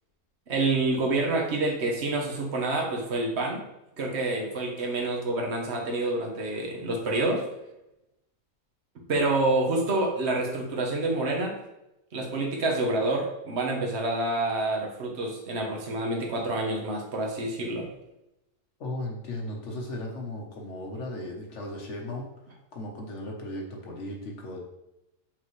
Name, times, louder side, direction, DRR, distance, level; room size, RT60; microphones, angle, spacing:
voice 1, 0.5-3.6 4.0-7.5 9.1-11.6 12.1-17.9, right 2 dB, 50° right, 0 dB, 1.3 m, -27 dB
voice 2, 18.8-22.3 22.7-24.6, left 1 dB, 55° left, 0 dB, 1.4 m, -36 dB
7.4 x 4.0 x 3.2 m, 0.91 s
omnidirectional pair, 1.5 m